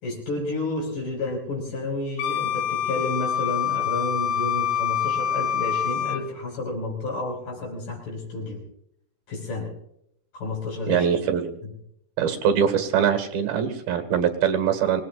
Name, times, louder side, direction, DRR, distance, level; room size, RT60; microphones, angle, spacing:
voice 1, 0.0-8.6 9.3-9.7 10.3-11.1, left 2 dB, 65° left, 1 dB, 7.0 m, -31 dB
Wind instrument woodwind instrument, 2.2-6.3, left 9 dB, 80° left, 2.6 m, -26 dB
voice 2, 10.9-11.6 12.2-15.0, right 8 dB, 80° right, 7 dB, 3.5 m, -23 dB
26.0 x 19.0 x 2.5 m, 0.72 s
omnidirectional pair, 4.3 m